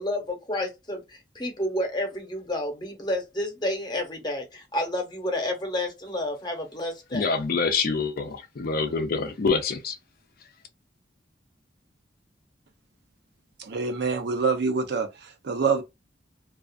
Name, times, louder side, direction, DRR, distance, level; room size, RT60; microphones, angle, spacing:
voice 1, 0.0-7.4, left 1 dB, 25° left, 0.9 m, -30 dB
voice 2, 7.1-10.0, left 4 dB, 55° left, 0.5 m, -26 dB
voice 3, 13.6-15.8, right 4 dB, 65° right, 0.5 m, -26 dB
2.4 x 2.4 x 2.4 m
head